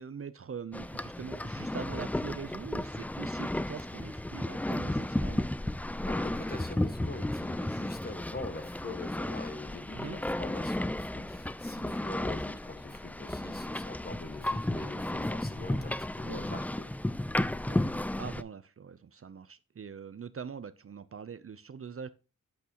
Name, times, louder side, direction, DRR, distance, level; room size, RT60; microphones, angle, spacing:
voice 1, 0.0-5.5 9.9-10.2 11.8-12.0 16.3-16.6 17.7-22.1, right 6 dB, 45° right, 0.6 m, -43 dB
sound 1, 0.7-18.4, left 1 dB, 5° left, 0.3 m, -33 dB
voice 2, 6.1-16.9, left 2 dB, 30° left, 1.6 m, -43 dB
8.7 x 8.3 x 2.9 m
cardioid pair, 50°, 31 cm